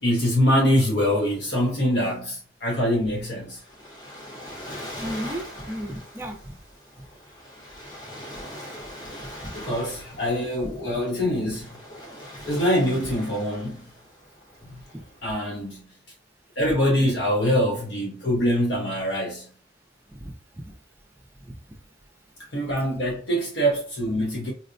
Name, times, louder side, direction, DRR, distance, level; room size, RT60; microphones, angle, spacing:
voice 1, 0.0-3.6 9.1-9.2 9.5-11.7 12.5-13.8 15.2-15.8 16.6-19.5 22.5-24.5, equal, 65° left, 0.7 m, -24 dB
Waves surf, 3.2-15.6, equal, 20° left, 0.8 m, -42 dB
voice 2, 4.9-6.5 7.0-7.1 9.2-9.8 14.9-15.0 20.1-20.3 20.6-20.7 21.5-21.6, equal, 15° right, 0.4 m, -35 dB
4.1 x 2.1 x 2.5 m
head